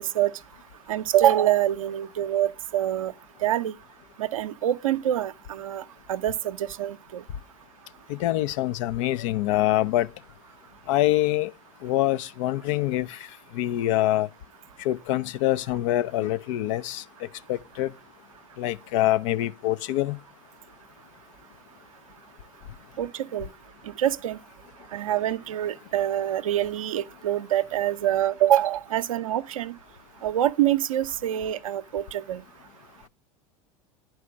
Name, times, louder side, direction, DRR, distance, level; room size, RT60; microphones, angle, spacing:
voice 1, 0.9-3.1 3.4-3.7 4.2-5.8 6.1-7.2 23.0-23.5 24.0-24.4 24.9-29.7 30.2-32.4, right 12 dB, 80° right, 0.6 m, -25 dB
voice 2, 8.2-10.1 10.9-11.5 11.8-13.2 13.5-14.3 14.8-17.0 17.5-17.9 18.6-20.2, left 14 dB, 65° left, 0.5 m, -25 dB
10.0 x 4.7 x 6.2 m
hypercardioid pair, 80°, 17 cm